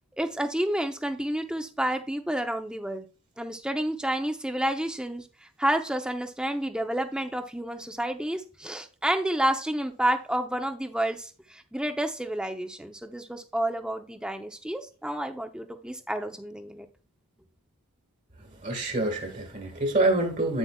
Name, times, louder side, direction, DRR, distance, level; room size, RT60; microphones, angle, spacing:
voice 1, 0.2-3.1 3.4-5.2 5.6-16.9, right 1 dB, 5° right, 0.7 m, -30 dB
voice 2, 18.6-20.6, right 2 dB, 35° right, 1.7 m, -26 dB
8.8 x 8.0 x 2.3 m
head